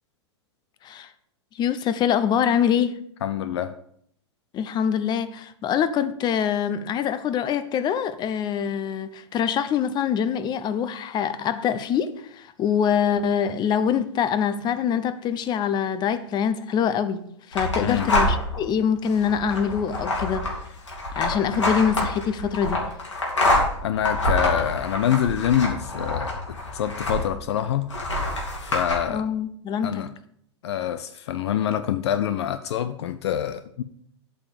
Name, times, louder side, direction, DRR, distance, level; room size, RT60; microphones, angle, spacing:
voice 1, 1.5-3.0 4.5-20.4 21.1-22.8 29.1-30.0, left 8 dB, 30° left, 0.7 m, -24 dB
voice 2, 3.2-3.7 17.8-18.1 23.8-27.9 28.6-29.2 29.8-30.1 30.6-33.8, left 10 dB, 65° left, 0.6 m, -26 dB
sound 1, 17.5-18.6 19.0-27.5 27.9-28.9, left 1 dB, 85° left, 3.3 m, -26 dB
8.4 x 5.3 x 7.5 m
hypercardioid pair, 110°, 15 cm